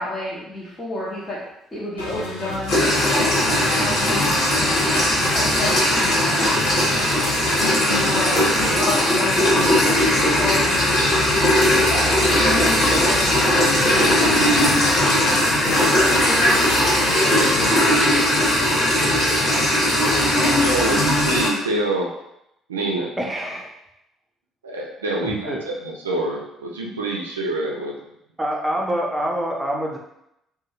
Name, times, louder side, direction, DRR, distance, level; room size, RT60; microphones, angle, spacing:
voice 1, 0.0-1.4 1.7-4.7 5.2-9.8 10.4-10.8 11.3-13.6 14.3-15.4 16.0-16.6, left 1 dB, 25° left, -8 dB, 0.8 m, -32 dB
sound 1, 2.0-17.7, left 2 dB, 80° left, 0.5 m, -30 dB
sound 2, 2.7-21.5, left 1 dB, 50° left, 1.3 m, -19 dB
voice 2, 20.6-22.1 22.7-23.1 24.6-28.0, right 2 dB, 80° right, -1 dB, 0.4 m, -26 dB
voice 3, 23.2-23.7 25.2-25.6 28.4-30.0, equal, 15° right, -1 dB, 0.7 m, -26 dB
2.6 x 2.2 x 3.0 m, 0.81 s
figure-of-eight pair, 50°, 0 cm